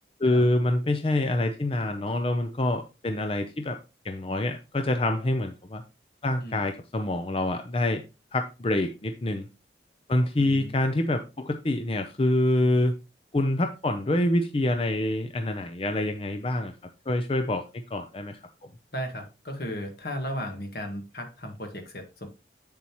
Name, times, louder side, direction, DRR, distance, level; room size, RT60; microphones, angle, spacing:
voice 1, 0.2-3.8 4.0-5.8 6.2-8.0 8.3-9.5 10.1-12.9 13.3-16.7 17.1-18.7, left 1 dB, 30° left, 6 dB, 0.5 m, -26 dB
voice 2, 10.4-10.8 18.9-22.3, equal, 60° left, 4 dB, 1.7 m, -35 dB
7.8 x 7.0 x 3.0 m, 0.28 s
head